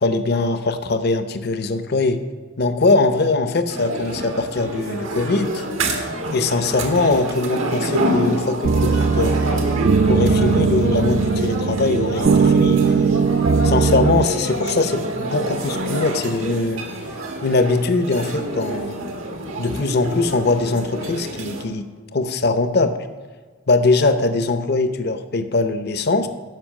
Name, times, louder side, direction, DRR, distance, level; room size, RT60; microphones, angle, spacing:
voice 1, 0.0-2.2 2.6-5.7 6.3-9.6 10.1-13.2 13.6-16.9 17.4-19.0 19.6-23.0 23.7-26.3, left 3 dB, 55° left, 10 dB, 0.7 m, -21 dB
sound 1, 3.7-21.6, right 1 dB, 85° right, 1.4 m, -27 dB
sound 2, 8.6-14.3, right 5 dB, 50° right, 0.3 m, -19 dB
12.0 x 5.5 x 6.4 m, 1.4 s
head